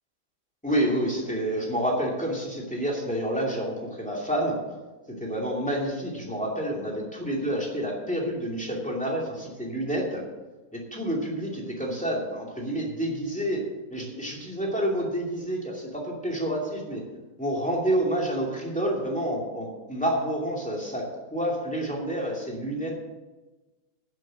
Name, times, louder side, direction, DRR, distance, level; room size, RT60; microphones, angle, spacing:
voice 1, 0.6-4.6 5.1-10.2 10.7-13.6 13.9-17.0 17.4-21.0 21.3-23.0, right 1 dB, 5° left, -2 dB, 2.5 m, -28 dB
10.5 x 7.6 x 7.6 m, 1.2 s
omnidirectional pair, 1.8 m